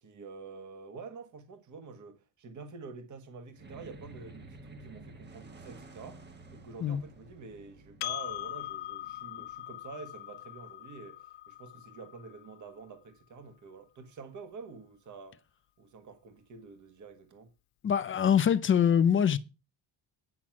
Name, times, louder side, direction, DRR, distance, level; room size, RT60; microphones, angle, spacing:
voice 1, 0.0-15.4 15.8-17.5, right 4 dB, 40° right, 1.6 m, -48 dB
sound 1, 3.5-10.1, right 2 dB, 20° right, 1.2 m, -52 dB
Percussion, 8.0-12.8, left 14 dB, 70° left, 0.9 m, -41 dB
voice 2, 17.8-19.4, left 8 dB, 25° left, 0.5 m, -24 dB
10.0 x 6.0 x 6.0 m
cardioid pair, 150°, 48 cm